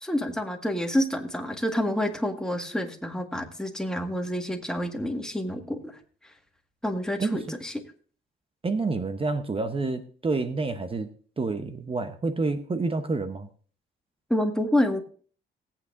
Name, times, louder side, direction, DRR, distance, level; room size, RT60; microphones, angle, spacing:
voice 1, 0.0-5.9 6.8-7.7 14.3-15.0, left 1 dB, 5° left, 3 dB, 1.8 m, -28 dB
voice 2, 7.2-7.6 8.6-11.1 11.4-13.5, right 3 dB, 25° right, 9 dB, 0.9 m, -28 dB
18.5 x 8.7 x 2.6 m, 0.44 s
cardioid pair, 90°, 20 cm